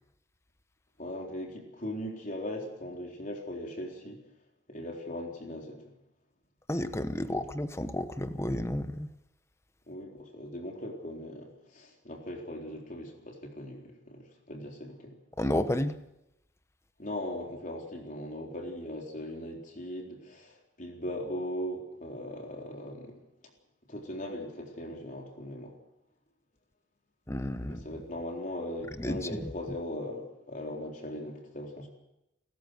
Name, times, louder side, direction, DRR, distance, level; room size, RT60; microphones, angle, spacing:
voice 1, 1.0-4.2 4.7-5.9 7.2-7.4 9.9-15.2 17.0-23.2 23.9-25.8 27.6-31.9, left 1 dB, 45° left, 4.0 m, -39 dB
voice 2, 6.7-9.1 15.4-16.0 27.3-27.9 29.0-29.3, left 1 dB, 15° left, 1.0 m, -31 dB
30.0 x 14.5 x 6.6 m
head